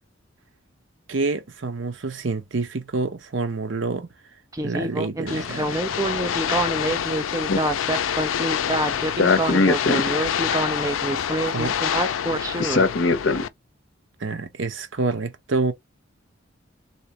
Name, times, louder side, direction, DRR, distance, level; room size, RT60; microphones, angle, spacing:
voice 1, 1.1-4.1 4.6-5.8 11.5-11.8 14.2-15.7, right 3 dB, 65° right, 0.8 m, -27 dB
Speech synthesizer, 4.5-12.9, right 2 dB, 15° right, 0.6 m, -26 dB
sound 1, 5.3-13.5, left 8 dB, 90° left, 0.4 m, -27 dB
voice 2, 9.2-10.0 12.6-13.5, left 3 dB, 65° left, 0.7 m, -20 dB
3.5 x 2.8 x 2.9 m
head